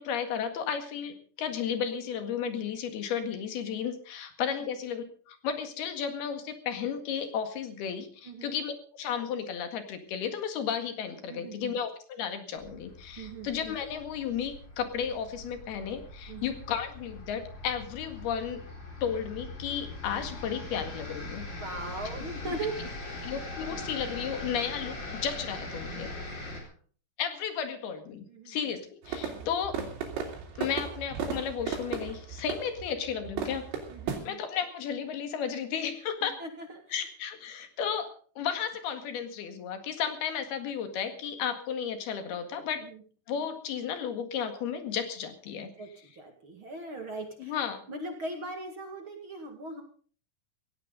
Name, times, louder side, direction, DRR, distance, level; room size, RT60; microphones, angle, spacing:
voice 1, 0.0-18.6 19.0-21.4 22.5-22.6 23.2-26.1 27.2-29.8 30.6-33.7 34.3-36.4 36.9-42.8 43.3-45.7 47.4-47.8, left 7 dB, 60° left, 7 dB, 3.5 m, -33 dB
voice 2, 8.2-8.5 11.3-11.8 13.2-13.5 16.3-16.5 21.6-23.3 26.2-26.8 28.3-28.6 29.3-29.5 33.9-34.4 36.2-36.9 42.7-43.0 45.8-47.5 47.9-49.8, right 2 dB, 45° right, 3 dB, 1.7 m, -40 dB
sound 1, 12.6-26.6, left 2 dB, 25° left, 4.3 m, -41 dB
sound 2, 29.0-34.2, right 6 dB, 85° right, 5.7 m, -35 dB
17.5 x 17.5 x 3.9 m, 0.43 s
omnidirectional pair, 5.6 m